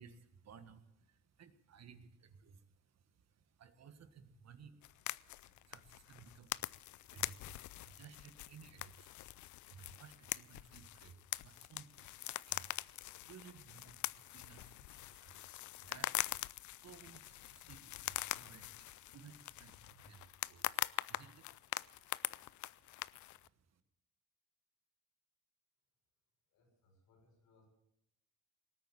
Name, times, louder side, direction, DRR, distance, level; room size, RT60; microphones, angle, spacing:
voice 1, 0.0-23.8, right 6 dB, 60° right, 11 dB, 1.6 m, -60 dB
sound 1, 4.8-23.5, left 16 dB, 75° left, 0.5 m, -44 dB
voice 2, 26.5-27.7, left 3 dB, 90° left, 1 dB, 6.3 m, -70 dB
18.5 x 9.0 x 8.7 m, 0.82 s
cardioid pair, 90°, 30 cm